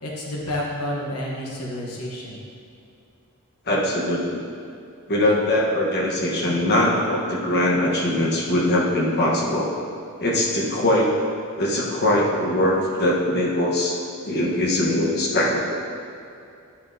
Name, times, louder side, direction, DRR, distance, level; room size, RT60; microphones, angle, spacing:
voice 1, 0.0-2.4, left 1 dB, 75° left, -3 dB, 1.1 m, -30 dB
voice 2, 3.7-4.4 5.1-9.7 10.2-11.1 11.6-13.9 14.2-15.6, left 1 dB, 45° left, -4 dB, 1.2 m, -21 dB
11.0 x 5.7 x 2.7 m, 2.6 s
head